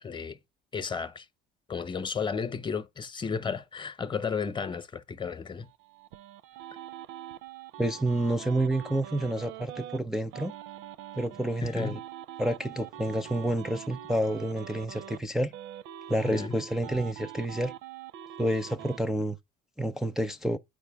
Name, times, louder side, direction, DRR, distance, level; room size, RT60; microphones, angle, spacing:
voice 1, 0.0-0.4 0.7-1.3 1.7-5.7 11.6-12.0 16.2-16.6, left 6 dB, 25° left, 0.8 m, -33 dB
sound 1, 5.6-10.0 10.3-15.2 15.5-19.0, right 11 dB, 80° right, 0.6 m, -44 dB
voice 2, 7.8-10.5 11.1-12.0 12.4-15.5 16.1-17.7 18.4-19.4 19.8-20.6, right 1 dB, ahead, 0.5 m, -29 dB
9.2 x 4.9 x 3.5 m
cardioid pair, 120°, 20 cm